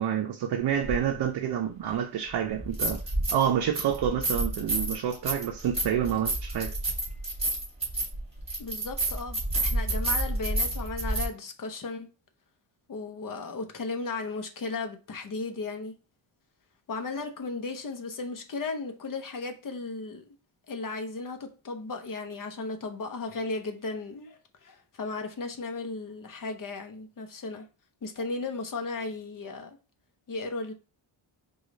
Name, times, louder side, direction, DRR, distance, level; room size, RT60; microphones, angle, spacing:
voice 1, 0.0-3.0 3.3-6.7, right 9 dB, 55° right, 0.6 m, -28 dB
sound 1, 0.8-1.0 2.5-3.5 3.7-11.3, right 2 dB, 15° right, 2.6 m, -29 dB
voice 2, 8.6-12.1 12.9-15.9 16.9-20.2 20.7-27.7 28.0-29.8 30.3-30.7, left 3 dB, 45° left, 0.7 m, -35 dB
4.8 x 2.4 x 3.9 m
wide cardioid pair, 165°, 48 cm